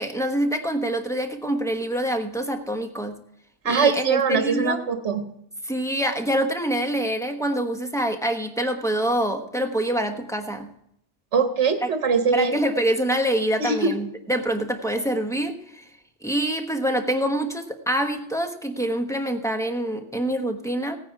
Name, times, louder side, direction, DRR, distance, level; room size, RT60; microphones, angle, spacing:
voice 1, 0.0-3.2 3.6-4.8 5.6-10.7 11.8-11.9 12.3-15.8 16.2-21.0, right 1 dB, 5° left, 4 dB, 1.1 m, -25 dB
voice 2, 3.6-5.2 11.3-12.5 13.6-13.9, right 5 dB, 70° right, 6 dB, 1.4 m, -22 dB
17.0 x 9.5 x 4.8 m, 0.76 s
omnidirectional pair, 1.2 m